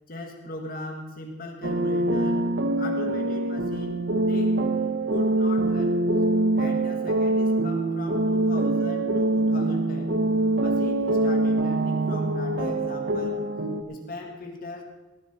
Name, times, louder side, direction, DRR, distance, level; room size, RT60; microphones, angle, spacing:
voice 1, 0.1-2.5 2.8-6.0 6.6-10.1 10.6-13.5 13.9-14.8, left 2 dB, 50° left, 2 dB, 1.9 m, -38 dB
sound 1, 1.6-13.8, right 2 dB, 75° right, 1.2 m, -24 dB
18.5 x 11.5 x 4.5 m, 1.2 s
head